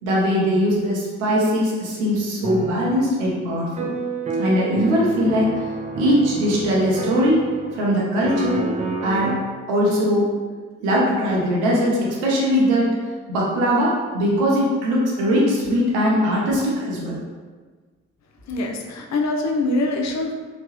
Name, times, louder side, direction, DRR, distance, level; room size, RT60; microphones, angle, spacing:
voice 1, 0.0-3.9 4.4-5.5 6.0-7.4 7.7-8.6 9.0-9.3 9.7-10.3 10.8-13.0 13.3-17.2, equal, 85° right, -4 dB, 0.7 m, -20 dB
sound 1, 2.4-3.0 3.8-7.9 8.2-9.4, right 4 dB, 20° right, 0.4 m, -29 dB
voice 2, 18.5-20.3, left 2 dB, 50° left, 1 dB, 0.6 m, -24 dB
2.9 x 2.2 x 3.0 m, 1.4 s
hypercardioid pair, 40°, 35 cm